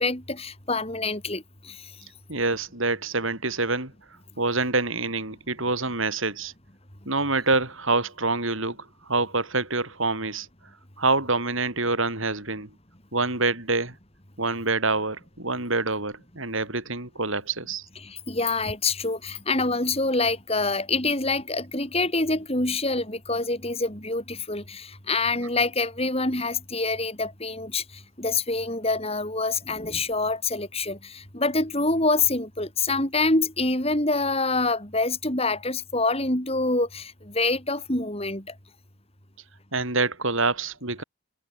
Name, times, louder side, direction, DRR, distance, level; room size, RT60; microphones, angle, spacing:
voice 1, 0.0-1.9 18.0-38.5, left 3 dB, 30° left, 7.5 m, -26 dB
voice 2, 2.3-3.9 4.4-6.5 7.1-10.5 11.0-12.7 13.1-13.9 14.4-17.9 39.7-41.0, right 3 dB, 65° right, 6.4 m, -26 dB
head